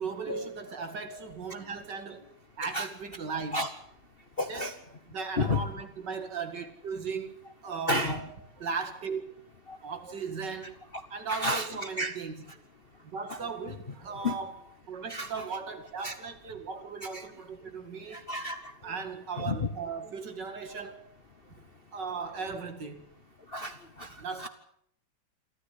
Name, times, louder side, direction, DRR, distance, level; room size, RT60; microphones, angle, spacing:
voice 1, 0.0-3.6 4.4-4.7 5.1-8.3 8.6-9.2 9.8-10.8 11.1-12.4 13.0-14.6 14.9-18.2 18.8-21.0 21.9-23.0 24.2-24.5, right 5 dB, 60° right, 2.7 m, -37 dB
voice 2, 4.4-4.7 5.4-5.6 7.9-8.2 9.7-9.8 11.3-11.7 12.0-12.1 13.3-13.4 14.2-14.4 15.1-15.3 16.0-16.1 17.1-17.2 18.1-18.7 19.4-19.7 23.5-24.5, left 2 dB, 35° left, 1.0 m, -31 dB
27.5 x 13.5 x 8.3 m
omnidirectional pair, 2.2 m